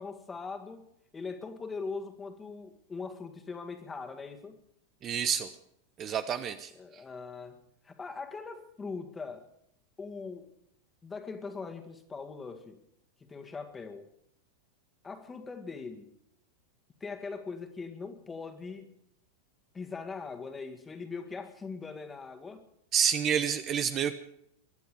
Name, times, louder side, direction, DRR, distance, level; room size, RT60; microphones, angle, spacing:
voice 1, 0.0-4.6 6.7-9.5 10.0-10.5 11.0-12.8 13.3-14.1 15.0-16.1 17.0-18.9 19.7-22.7, left 4 dB, 15° left, 6 dB, 2.1 m, -41 dB
voice 2, 5.0-5.5 6.0-6.7 22.9-24.1, right 8 dB, 30° right, 11 dB, 0.8 m, -28 dB
24.0 x 11.5 x 5.2 m, 0.74 s
figure-of-eight pair, 90°, 0 cm